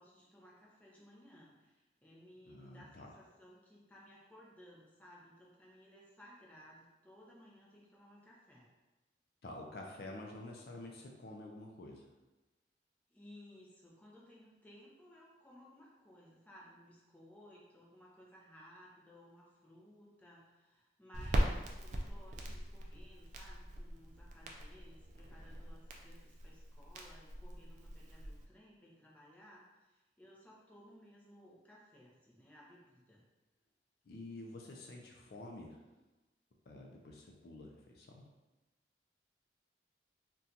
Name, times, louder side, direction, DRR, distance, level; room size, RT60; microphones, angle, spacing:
voice 1, 0.0-8.7 13.1-33.2, equal, 10° left, -5 dB, 0.6 m, -59 dB
voice 2, 2.4-3.1 9.4-12.0 34.1-35.8 36.7-38.3, left 2 dB, 60° left, 0 dB, 0.4 m, -49 dB
Crackle, 21.1-28.4, equal, 40° right, 0.4 m, -40 dB
2.8 x 2.3 x 3.7 m, 1.1 s
head